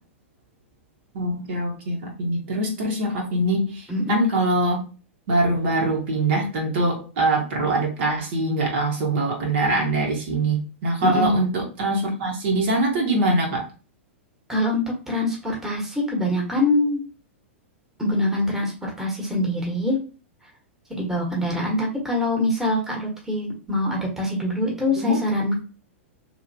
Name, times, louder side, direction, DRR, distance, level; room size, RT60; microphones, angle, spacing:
voice 1, 1.1-4.9 5.3-13.6 25.0-25.2, right 2 dB, 55° right, 0 dB, 1.3 m, -23 dB
voice 2, 3.9-4.2 11.0-11.4 14.5-17.0 18.0-20.0 20.9-25.6, left 1 dB, 5° right, -2 dB, 1.3 m, -24 dB
3.1 x 2.8 x 2.7 m, 0.34 s
figure-of-eight pair, 105°, 7 cm